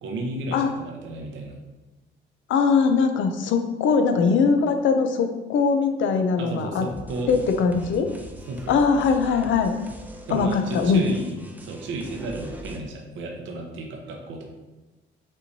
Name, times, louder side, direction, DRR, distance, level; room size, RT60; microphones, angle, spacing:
voice 1, 0.0-1.6 6.4-7.3 8.5-8.8 10.3-11.3 11.6-14.5, right 2 dB, 75° right, 1 dB, 0.7 m, -33 dB
voice 2, 2.5-6.8 7.3-8.1 8.7-9.7 10.3-11.0, left 5 dB, 75° left, 6 dB, 0.5 m, -21 dB
sound 1, 6.9-12.8, equal, 10° right, 0.5 m, -41 dB
5.4 x 3.1 x 2.7 m, 1.1 s
cardioid pair, 90°, 20 cm